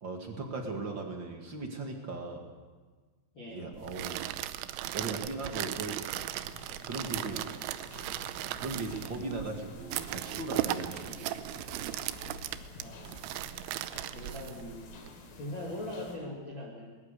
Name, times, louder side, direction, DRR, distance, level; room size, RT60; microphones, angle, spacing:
voice 1, 0.0-2.5 3.5-4.3 4.9-6.1 6.8-7.5 8.6-11.1, right 3 dB, 55° right, 2 dB, 1.3 m, -38 dB
voice 2, 3.3-3.7 7.2-7.4 11.0-11.3 12.8-13.2 14.1-14.9 15.4-16.9, left 1 dB, 35° left, -3 dB, 2.3 m, -41 dB
sound 1, 3.7-15.1, right 14 dB, 80° right, 3.1 m, -37 dB
sound 2, 5.7-16.2, left 3 dB, 85° left, 5.6 m, -51 dB
sound 3, 8.0-15.1, left 3 dB, 60° left, 2.4 m, -53 dB
20.5 x 20.0 x 6.8 m, 1.4 s
omnidirectional pair, 5.5 m